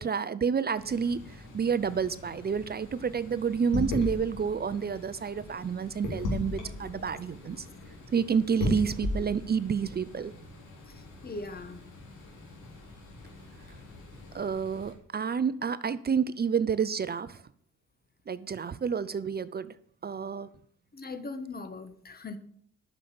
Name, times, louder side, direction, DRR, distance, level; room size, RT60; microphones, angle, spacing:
voice 1, 0.0-7.7 8.1-10.3 14.3-17.4 18.3-19.7 20.0-20.5, right 6 dB, 30° right, 0.6 m, -29 dB
sound 1, 0.8-14.9, left 2 dB, 85° left, 3.6 m, -38 dB
voice 2, 11.2-11.8 20.9-22.4, left 3 dB, 30° left, 1.6 m, -40 dB
9.8 x 6.7 x 7.8 m
cardioid pair, 90°, 30 cm